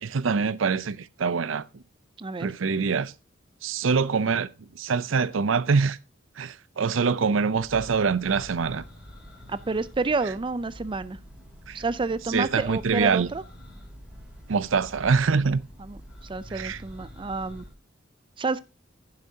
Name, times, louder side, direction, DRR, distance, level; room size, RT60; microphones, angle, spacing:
voice 1, 0.0-1.8 2.4-3.1 3.6-4.5 4.7-6.0 6.4-8.8 11.7-11.8 12.3-13.3 14.5-15.6 16.5-16.8, right 5 dB, 80° right, 0.6 m, -24 dB
voice 2, 2.2-2.5 9.5-11.2 11.7-13.4 15.9-17.7 18.4-18.6, right 3 dB, 25° right, 0.5 m, -29 dB
Church bell, 7.5-17.7, equal, 5° right, 5.3 m, -46 dB
10.5 x 10.5 x 2.8 m
head